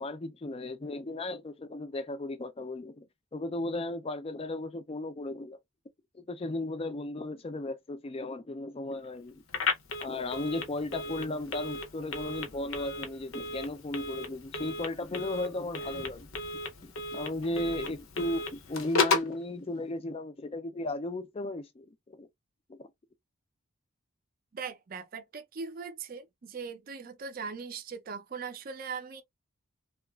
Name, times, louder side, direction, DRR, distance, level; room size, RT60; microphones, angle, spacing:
voice 1, 0.0-3.1 3.3-5.6 6.1-9.4 10.0-16.4 16.8-22.3 22.7-22.9, left 2 dB, 25° left, 0.3 m, -35 dB
Telephone, 9.5-19.4, left 4 dB, 70° left, 0.7 m, -34 dB
voice 2, 24.5-29.2, right 5 dB, 40° right, 0.4 m, -40 dB
2.8 x 2.4 x 2.2 m
head